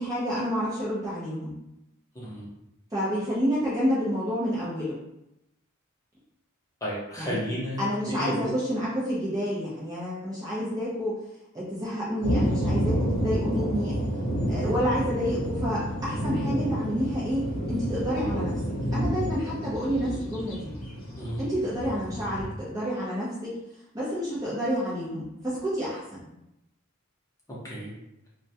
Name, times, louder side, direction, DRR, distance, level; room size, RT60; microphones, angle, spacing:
voice 1, 0.0-1.5 2.9-5.0 7.2-7.4 7.8-11.1 11.5-14.0 14.5-17.4 17.7-18.5 18.9-20.7 21.4-23.5 23.9-26.3, equal, 15° right, -8 dB, 0.4 m, -29 dB
voice 2, 2.1-2.5 6.8-8.5 21.2-21.4 27.5-27.9, equal, 15° left, -7 dB, 0.7 m, -33 dB
sound 1, 12.2-22.5, equal, 65° left, 0.7 m, -29 dB
2.2 x 2.1 x 2.6 m, 0.86 s
head